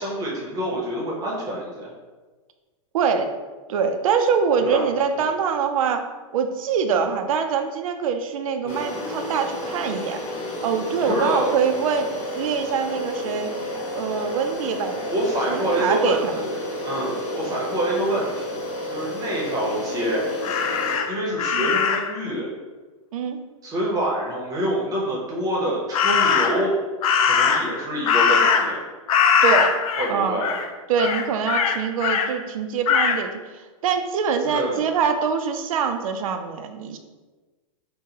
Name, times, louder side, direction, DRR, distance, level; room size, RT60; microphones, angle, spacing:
voice 1, 0.0-1.9 4.6-4.9 5.2-5.3 8.6-8.9 11.0-11.6 15.1-20.2 21.1-22.5 23.6-26.7 27.2-28.8 30.0-30.5 34.4-34.9, right 1 dB, 20° right, -3 dB, 0.8 m, -26 dB
voice 2, 2.9-3.3 3.7-6.0 6.3-10.2 10.6-12.1 12.3-13.5 13.9-15.0 15.5-16.3 21.5-21.7 23.1-23.4 29.4-29.8 30.1-30.4 30.9-33.4 33.8-37.0, right 6 dB, 75° right, 7 dB, 0.4 m, -24 dB
sound 1, 8.7-21.0, left 1 dB, 30° left, 1.1 m, -31 dB
Crow, 20.4-22.2 25.9-26.7 27.0-28.8 29.1-30.1 30.4-30.7 31.0-32.3 32.9-33.2, left 6 dB, 80° left, 0.4 m, -21 dB
3.7 x 2.2 x 2.8 m, 1.3 s
hypercardioid pair, 135°, 18 cm